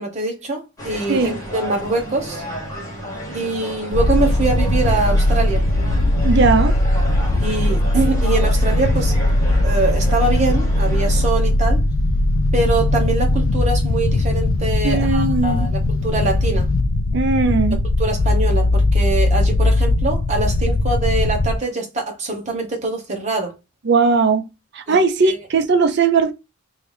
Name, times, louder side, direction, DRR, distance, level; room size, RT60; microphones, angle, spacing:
voice 1, 0.0-2.4 3.3-5.6 7.4-9.1 9.6-11.8 12.5-16.7 18.0-23.5 24.9-25.4, right 3 dB, 35° right, 1.1 m, -23 dB
sound 1, 0.8-11.3, right 1 dB, 15° left, 1.2 m, -32 dB
sound 2, 3.9-21.6, left 1 dB, 75° left, 0.4 m, -19 dB
voice 2, 6.2-6.8 14.8-15.7 17.1-17.8 23.9-24.4 24.7-26.3, right 4 dB, 55° right, 0.5 m, -18 dB
3.3 x 2.7 x 3.2 m
head